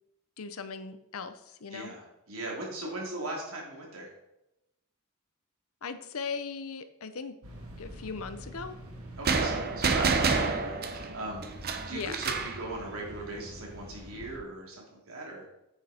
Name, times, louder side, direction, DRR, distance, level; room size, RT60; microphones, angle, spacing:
voice 1, 0.4-1.9 5.8-7.3 7.8-8.7 11.9-12.2, left 5 dB, 80° left, 11 dB, 0.7 m, -38 dB
voice 2, 1.7-4.1 9.2-11.5 11.9-15.5, right 2 dB, 75° right, -2 dB, 3.0 m, -39 dB
sound 1, 7.4-14.4, equal, 90° right, 2.2 m, -46 dB
sound 2, 9.3-12.6, right 4 dB, 45° right, 0.8 m, -28 dB
9.1 x 6.5 x 4.3 m, 0.87 s
head